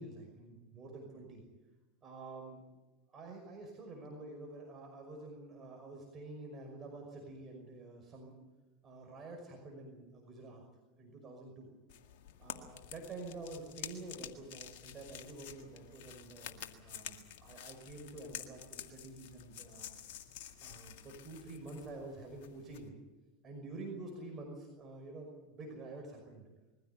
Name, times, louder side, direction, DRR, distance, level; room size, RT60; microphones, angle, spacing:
voice 1, 0.0-1.4 2.0-2.6 3.1-8.3 8.8-10.6 11.0-11.7 12.4-19.9 20.6-23.0 23.4-26.5, right 2 dB, 30° right, 1 dB, 5.6 m, -48 dB
sound 1, 11.9-22.9, left 10 dB, 65° left, 1.9 m, -50 dB
22.0 x 15.5 x 9.4 m, 1.2 s
hypercardioid pair, 90°, 0 cm